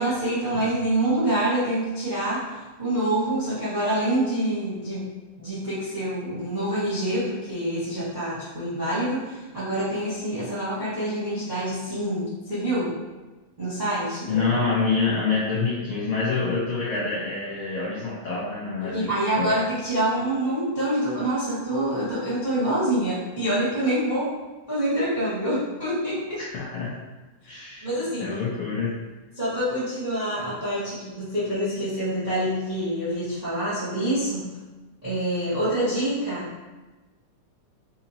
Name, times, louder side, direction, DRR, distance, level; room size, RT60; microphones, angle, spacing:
voice 1, 0.0-5.1 5.4-12.9 13.6-14.4 18.8-24.3 24.7-26.4 27.4-27.5 27.8-28.3 29.3-34.5 35.0-36.5, right 1 dB, 55° right, -11 dB, 0.4 m, -26 dB
voice 2, 14.3-19.1 19.4-19.5 26.5-26.9 27.4-27.9 28.2-28.9, left 4 dB, 85° left, -7 dB, 1.2 m, -26 dB
4.9 x 2.9 x 2.8 m, 1.2 s
omnidirectional pair, 3.4 m